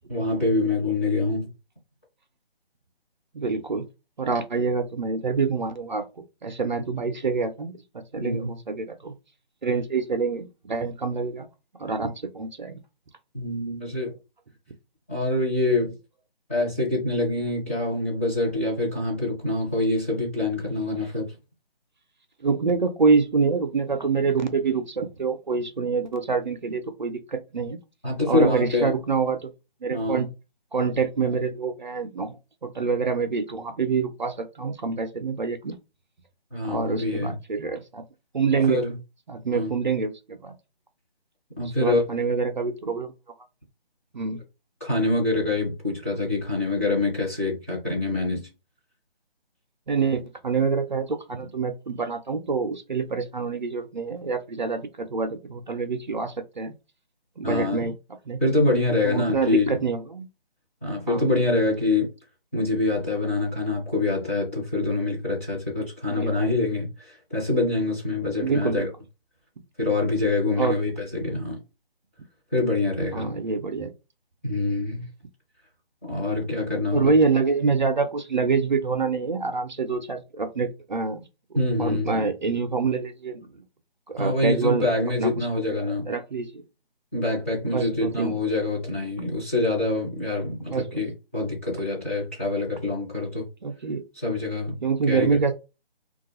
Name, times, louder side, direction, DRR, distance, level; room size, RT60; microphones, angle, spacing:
voice 1, 0.1-1.5 8.2-8.6 13.3-14.1 15.1-15.9 16.5-21.3 28.0-28.9 29.9-30.2 36.5-37.4 38.5-39.0 39.5-39.7 41.6-42.0 44.8-48.5 57.4-57.8 58.4-59.8 60.8-62.1 62.5-68.9 69.8-71.6 72.5-73.3 74.4-75.1 76.0-77.1 81.5-82.3 84.2-86.1 87.1-93.5 94.2-94.8 95.1-95.3, left 2 dB, 15° left, 0.7 m, -25 dB
voice 2, 3.3-3.9 4.2-9.1 9.6-11.5 11.8-12.8 22.4-27.8 28.3-29.5 29.8-30.3 30.7-32.4 32.6-35.8 36.6-38.0 38.3-38.8 39.3-40.5 41.6-43.1 44.1-44.4 49.9-56.7 57.4-57.9 58.3-58.4 59.0-60.3 61.1-61.2 66.1-66.3 68.4-68.9 70.6-70.8 73.1-73.9 76.9-81.2 81.8-83.6 84.1-84.9 85.2-86.6 87.7-88.4 90.7-91.0 93.6-94.0 94.8-95.5, right 4 dB, 50° right, 0.5 m, -26 dB
2.3 x 2.3 x 2.9 m
figure-of-eight pair, 155°, 30 cm